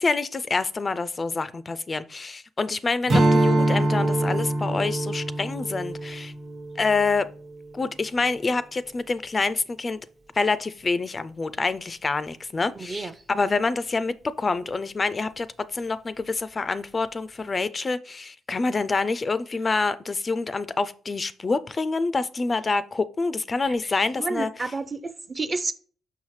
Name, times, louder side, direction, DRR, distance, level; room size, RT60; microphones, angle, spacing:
voice 1, 0.0-6.3 6.8-7.3 7.7-10.0 10.4-15.5 15.7-24.7, left 3 dB, 30° left, 0.3 m, -27 dB
Strum, 3.1-7.8, right 1 dB, 55° right, 1.2 m, -24 dB
voice 2, 24.2-25.7, right 3 dB, 30° right, 0.5 m, -30 dB
5.5 x 5.5 x 3.1 m
cardioid pair, 90°, 0 cm